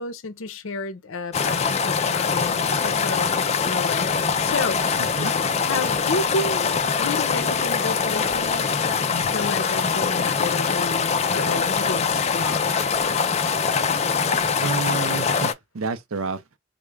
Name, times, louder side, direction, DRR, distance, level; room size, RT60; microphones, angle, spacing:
voice 1, 0.0-8.7 9.1-12.7, left 3 dB, 70° left, 0.6 m, -31 dB
sound 1, 1.3-15.5, left 5 dB, 30° left, 0.3 m, -23 dB
voice 2, 5.0-5.3 14.6-16.4, right 4 dB, 80° right, 0.6 m, -29 dB
3.6 x 2.3 x 3.2 m
head